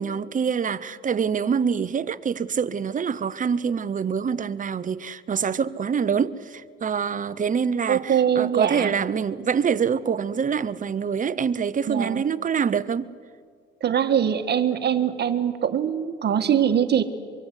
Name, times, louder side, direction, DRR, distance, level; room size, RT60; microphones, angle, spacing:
voice 1, 0.0-13.1, right 6 dB, 40° right, 1.0 m, -25 dB
voice 2, 7.9-8.9 11.8-12.2 13.8-17.0, right 9 dB, 60° right, 1.6 m, -22 dB
24.5 x 23.5 x 8.4 m
cardioid pair, 90°, 20 cm